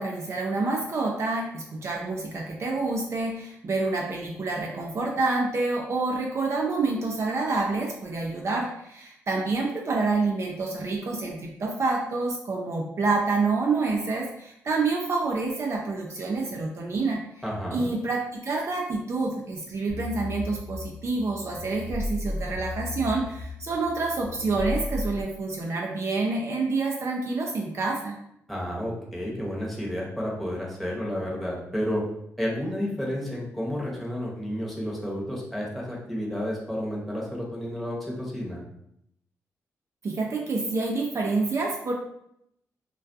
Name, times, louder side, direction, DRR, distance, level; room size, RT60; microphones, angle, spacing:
voice 1, 0.0-17.2 17.7-28.2 40.0-41.9, right 3 dB, 50° right, 0 dB, 0.4 m, -28 dB
voice 2, 17.4-17.9 28.5-32.0 32.4-38.6, equal, ahead, -4 dB, 0.9 m, -31 dB
sound 1, 19.9-25.2, left 1 dB, 80° left, 0.4 m, -35 dB
2.2 x 2.2 x 2.6 m, 0.76 s
cardioid pair, 60°, 6 cm